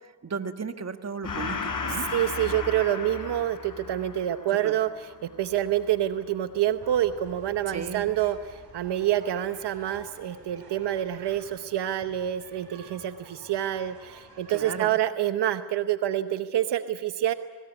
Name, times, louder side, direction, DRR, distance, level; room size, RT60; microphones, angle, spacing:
voice 1, 0.2-2.1 4.5-4.7 7.7-8.1 14.5-14.9, right 5 dB, 40° right, 8 dB, 1.7 m, -35 dB
Gong, 1.2-8.2, left 4 dB, 55° left, 3.9 m, -36 dB
voice 2, 2.1-17.3, right 12 dB, 90° right, 11 dB, 0.9 m, -27 dB
sound 1, 6.8-14.8, right 3 dB, 65° right, 8.0 m, -51 dB
22.0 x 19.5 x 9.7 m, 1.4 s
cardioid pair, 65°, 40 cm